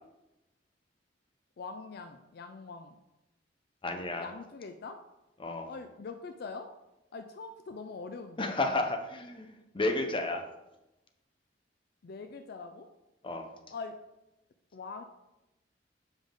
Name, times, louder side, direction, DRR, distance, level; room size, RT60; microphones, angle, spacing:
voice 1, 1.6-2.9 4.2-5.0 5.7-6.7 7.1-8.5 12.0-12.9 13.7-14.0 14.7-15.0, left 4 dB, 60° left, 7 dB, 0.4 m, -43 dB
voice 2, 3.8-4.3 5.4-5.7 8.4-9.5 9.7-10.4 13.2-13.5, left 2 dB, 30° left, 6 dB, 0.7 m, -31 dB
7.2 x 5.3 x 3.8 m, 0.94 s
head